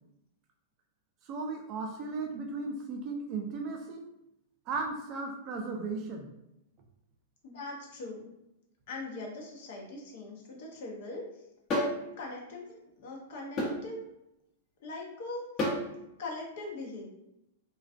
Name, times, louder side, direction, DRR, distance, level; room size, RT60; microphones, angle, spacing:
voice 1, 1.2-4.1 4.7-6.3, right 3 dB, 40° right, 3 dB, 0.4 m, -36 dB
voice 2, 7.4-8.3 8.9-11.2 12.2-14.0 14.8-15.5 16.2-17.1, left 2 dB, 65° left, -1 dB, 0.8 m, -41 dB
sound 1, 11.7-12.0 13.6-13.8 15.6-15.8, left 1 dB, 35° left, 0.8 m, -28 dB
2.4 x 2.2 x 2.4 m, 0.86 s
hypercardioid pair, 115°, 0 cm